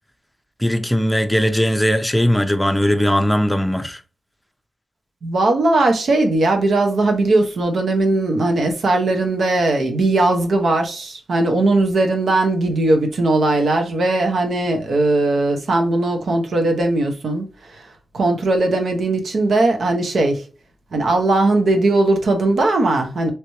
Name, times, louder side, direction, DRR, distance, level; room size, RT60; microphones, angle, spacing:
voice 1, 0.6-4.0, equal, 5° left, 0.5 m, -18 dB
voice 2, 5.2-17.8 18.1-20.4 20.9-23.3, right 2 dB, 75° right, 0.8 m, -18 dB
3.3 x 3.0 x 2.8 m
wide cardioid pair, 90°, 0 cm